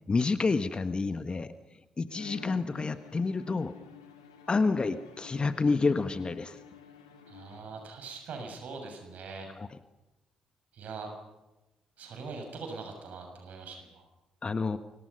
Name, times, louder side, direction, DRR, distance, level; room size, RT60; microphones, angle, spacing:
voice 1, 0.1-3.7 4.5-6.6 9.6-9.7 14.4-14.8, left 4 dB, 30° left, 11 dB, 1.5 m, -29 dB
Bowed string instrument, 2.1-8.1, left 6 dB, 80° left, 2.4 m, -51 dB
voice 2, 7.3-9.5 10.7-11.1 12.0-14.0, right 4 dB, 55° right, 4 dB, 6.9 m, -42 dB
29.0 x 26.0 x 5.5 m, 1.0 s
figure-of-eight pair, 40°, 3 cm